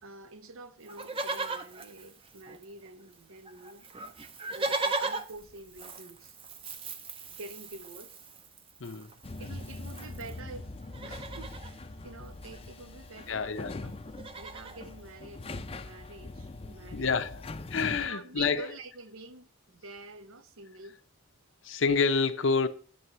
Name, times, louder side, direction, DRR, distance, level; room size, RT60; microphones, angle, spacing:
voice 1, 0.0-3.9 4.5-6.3 7.3-8.2 9.4-10.7 11.0-14.0 14.4-15.5 15.7-17.2 18.0-21.0, right 2 dB, 85° right, 0.8 m, -47 dB
Livestock farm animals working animals, 0.9-2.9 3.1-3.2 3.5-10.4 10.8-11.7 13.0-13.1 13.2-13.5 13.9-14.8 15.4-15.5, right 3 dB, 25° right, 0.6 m, -38 dB
voice 2, 8.8-9.1 13.3-13.7 16.9-17.4 17.7-18.7 21.6-22.7, left 5 dB, 65° left, 0.7 m, -28 dB
sound 1, 9.2-18.1, left 2 dB, 30° left, 0.5 m, -42 dB
9.4 x 3.5 x 6.8 m
head